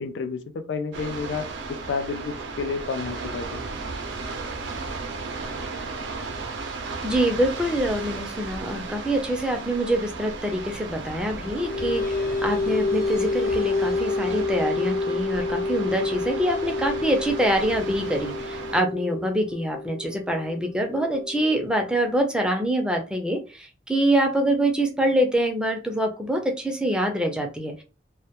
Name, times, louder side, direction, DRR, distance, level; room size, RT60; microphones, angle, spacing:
voice 1, 0.0-3.6, left 5 dB, 80° left, 0.4 m, -31 dB
sound 1, 0.9-18.8, right 3 dB, 90° right, 0.5 m, -35 dB
voice 2, 7.0-27.8, right 1 dB, 5° right, 0.4 m, -25 dB
sound 2, 11.2-22.2, left 3 dB, 50° left, 0.7 m, -29 dB
2.2 x 2.1 x 2.8 m
head